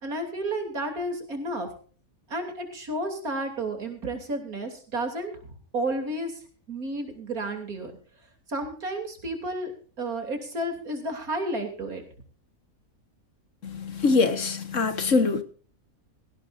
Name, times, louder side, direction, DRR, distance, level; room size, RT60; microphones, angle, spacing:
voice 1, 0.0-1.7 2.3-5.3 5.7-6.4 6.7-7.9 8.5-9.7 10.0-12.0, right 1 dB, 80° right, 5 dB, 3.5 m, -31 dB
voice 2, 13.6-15.4, left 4 dB, 60° left, 9 dB, 1.8 m, -23 dB
18.0 x 16.5 x 2.6 m, 0.42 s
omnidirectional pair, 1.5 m